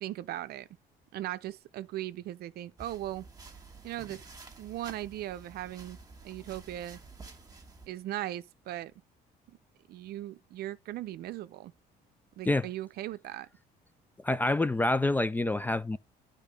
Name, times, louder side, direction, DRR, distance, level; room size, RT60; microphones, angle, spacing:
voice 1, 0.0-0.7 1.1-3.3 3.8-4.3 4.6-6.0 6.2-7.0 7.9-8.9 9.5-9.6 9.9-11.7 12.4-13.5, right 14 dB, 70° right, 0.6 m, -38 dB
sound 1, 2.8-7.9, right 3 dB, 20° right, 1.6 m, -50 dB
voice 2, 14.2-16.0, left 2 dB, 10° left, 0.3 m, -27 dB
10.0 x 3.8 x 5.2 m
cardioid pair, 110°, 17 cm